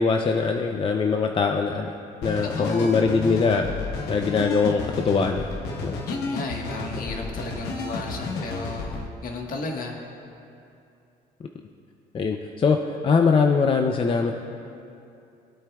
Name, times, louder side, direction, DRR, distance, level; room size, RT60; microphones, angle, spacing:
voice 1, 0.0-1.9 2.2-3.7 4.1-5.5 5.8-6.0 6.9-7.1 12.1-14.3, left 5 dB, 30° left, 4 dB, 0.5 m, -22 dB
sound 1, 2.2-9.1, left 3 dB, 75° left, 1.1 m, -32 dB
voice 2, 2.6-3.3 6.1-10.0, left 2 dB, 55° left, 2 dB, 1.4 m, -34 dB
19.5 x 8.7 x 2.3 m, 2.6 s
cardioid pair, 110°, 17 cm